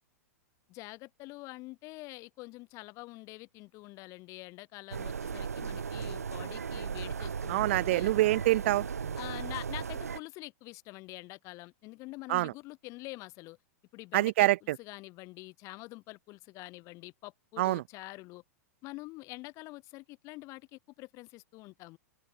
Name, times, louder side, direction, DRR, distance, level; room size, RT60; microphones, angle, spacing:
voice 1, 0.7-8.1 9.2-13.6 13.9-14.5 14.8-18.4 18.8-22.0, left 22 dB, 40° left, 5.9 m, -46 dB
sound 1, 4.9-10.2, right 6 dB, 75° right, 0.9 m, -36 dB
voice 2, 7.5-9.1 12.3-12.5 14.1-14.8 17.6-17.8, right 17 dB, 50° right, 0.4 m, -26 dB
open air
figure-of-eight pair, 100°, 8 cm